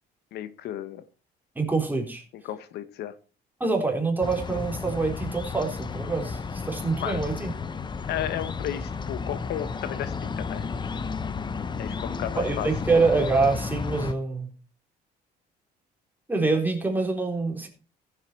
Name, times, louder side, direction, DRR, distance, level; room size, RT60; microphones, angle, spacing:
voice 1, 0.3-1.0 2.4-3.2 7.0-7.2 8.1-10.6 11.8-12.7, left 11 dB, 75° left, 13 dB, 1.1 m, -33 dB
voice 2, 1.6-2.2 3.6-6.4 6.7-7.5 12.4-14.5 16.3-17.7, right 3 dB, 10° right, 2 dB, 3.8 m, -25 dB
sound 1, 4.2-14.1, left 5 dB, 25° left, 0.9 m, -33 dB
15.0 x 8.2 x 4.5 m, 0.34 s
cardioid pair, 110°, 17 cm